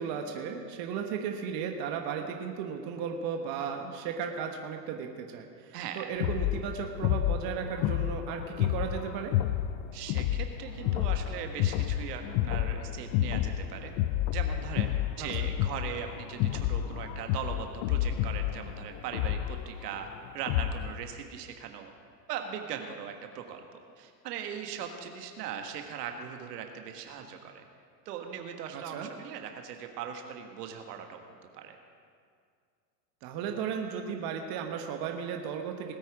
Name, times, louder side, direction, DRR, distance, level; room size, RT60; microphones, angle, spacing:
voice 1, 0.0-9.3 15.2-15.5 28.7-29.1 33.2-35.9, right 7 dB, 45° right, 4 dB, 1.4 m, -35 dB
voice 2, 5.7-6.1 9.9-13.9 14.3-20.1 20.3-21.9 22.3-27.6 28.0-31.8, right 8 dB, 70° right, 5 dB, 1.6 m, -40 dB
sound 1, 6.2-21.0, left 12 dB, 40° left, 0.5 m, -30 dB
19.5 x 9.0 x 5.0 m, 2.2 s
hypercardioid pair, 105°, 50 cm